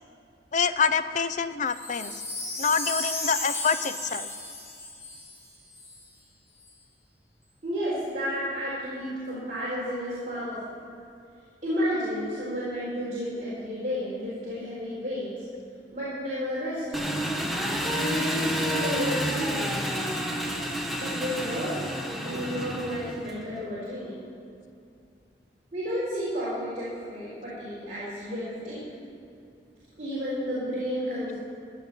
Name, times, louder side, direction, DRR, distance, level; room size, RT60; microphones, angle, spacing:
voice 1, 0.5-2.1 2.6-4.3 23.1-23.2, left 5 dB, 45° left, 12 dB, 0.5 m, -26 dB
Wind chime, 1.7-6.0 6.6-6.7, left 2 dB, 15° left, 2.0 m, -35 dB
voice 2, 7.6-10.6 11.6-15.4 15.9-17.0 17.8-20.0 21.0-21.7 22.1-24.1 25.7-28.8 30.0-31.3, equal, 40° right, -10 dB, 3.9 m, -31 dB
Engine, 16.9-23.4, equal, ahead, 1.0 m, -30 dB
15.0 x 5.7 x 9.5 m, 2.5 s
head